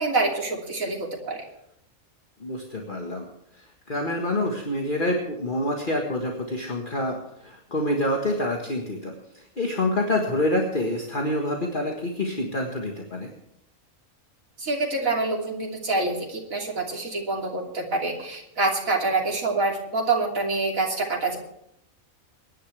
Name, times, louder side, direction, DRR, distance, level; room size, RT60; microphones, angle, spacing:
voice 1, 0.0-1.5 14.6-21.4, right 3 dB, 75° right, -1 dB, 3.4 m, -26 dB
voice 2, 2.4-3.3 3.9-7.2 7.4-9.1 9.6-13.3, left 1 dB, 40° left, 1 dB, 1.8 m, -27 dB
23.5 x 11.0 x 3.4 m, 0.75 s
omnidirectional pair, 1.4 m